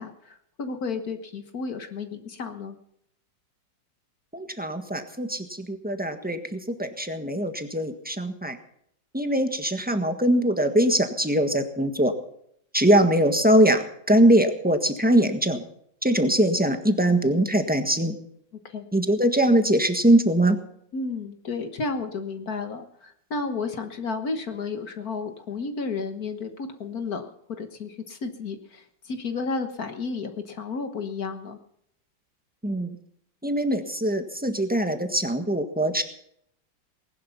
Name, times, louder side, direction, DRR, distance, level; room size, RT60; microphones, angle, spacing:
voice 1, 0.0-2.8 18.6-18.8 20.9-31.6, left 4 dB, 55° left, 7 dB, 1.7 m, -32 dB
voice 2, 4.3-8.6 9.1-12.1 12.7-15.6 16.0-18.1 18.9-20.6 32.6-33.0 33.4-36.0, right 1 dB, 5° right, 7 dB, 1.3 m, -22 dB
19.5 x 11.5 x 5.7 m, 0.70 s
omnidirectional pair, 2.1 m